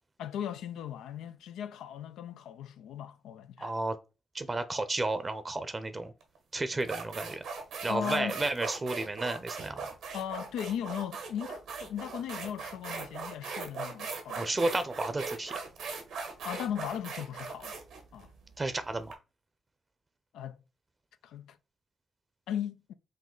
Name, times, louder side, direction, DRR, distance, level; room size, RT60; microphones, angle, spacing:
voice 1, 0.2-3.7 7.9-8.4 10.1-14.5 16.4-17.8 18.1-18.3 20.3-20.6 21.2-21.6 22.5-22.9, left 9 dB, 90° left, 0.4 m, -37 dB
voice 2, 3.6-4.0 4.3-6.1 6.5-7.4 7.8-9.9 14.4-15.6 18.6-19.2, right 2 dB, 30° right, 0.6 m, -32 dB
sound 1, 6.2-6.4 6.8-19.1, right 4 dB, 90° right, 1.2 m, -39 dB
5.2 x 2.7 x 3.8 m
cardioid pair, 65°, 0 cm